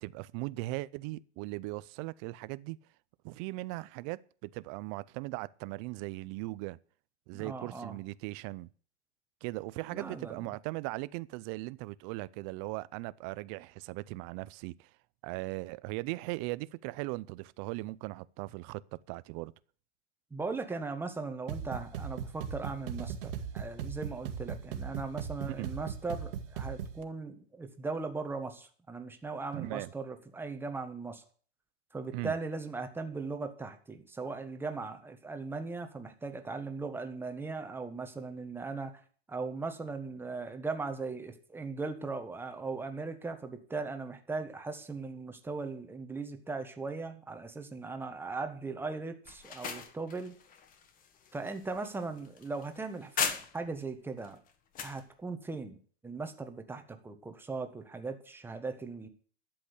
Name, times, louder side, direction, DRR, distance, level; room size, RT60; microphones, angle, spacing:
voice 1, 0.0-2.8 3.2-6.8 7.3-8.7 9.4-14.9 15.2-19.5 25.5-25.7 29.5-29.9 32.1-32.3, right 20 dB, 30° right, 0.5 m, -39 dB
voice 2, 7.3-8.0 9.9-10.5 20.3-31.2 31.9-39.0 39.3-50.4 51.3-54.4 54.8-55.8 56.0-59.1, right 3 dB, 5° right, 1.5 m, -38 dB
sound 1, 21.5-27.0, right 7 dB, 60° right, 1.9 m, -39 dB
sound 2, 49.2-53.8 54.2-55.0, left 7 dB, 25° left, 1.6 m, -38 dB
12.0 x 7.9 x 8.4 m
hypercardioid pair, 140°, 32 cm